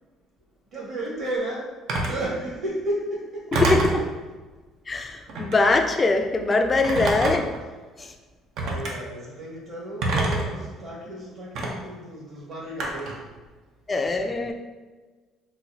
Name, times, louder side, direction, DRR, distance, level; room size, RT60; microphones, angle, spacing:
voice 1, 0.7-1.7 2.0-3.6 8.6-13.3, right 1 dB, 50° right, -5 dB, 1.5 m, -33 dB
Telephone, 1.9-2.2 3.5-4.0 5.3-5.6 6.8-7.6 8.6-8.9 10.0-10.6 11.5-11.7 12.8-13.2, right 2 dB, 70° right, 0.6 m, -25 dB
voice 2, 3.5-4.1 4.9-7.5 8.0-8.1 13.9-14.5, left 3 dB, 25° left, 5 dB, 0.4 m, -22 dB
4.0 x 2.2 x 2.7 m, 1.3 s
cardioid pair, 95°, 0 cm